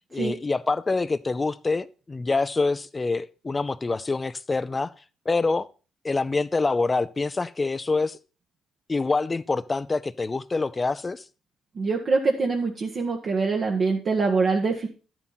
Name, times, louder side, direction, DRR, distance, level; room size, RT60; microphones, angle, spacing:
voice 1, 0.1-4.9 5.3-5.7 6.0-8.2 8.9-11.2, left 3 dB, 25° left, 0.5 m, -26 dB
voice 2, 11.8-14.9, right 4 dB, 50° right, 1.4 m, -24 dB
11.0 x 7.2 x 4.1 m
cardioid pair, 90°, 0 cm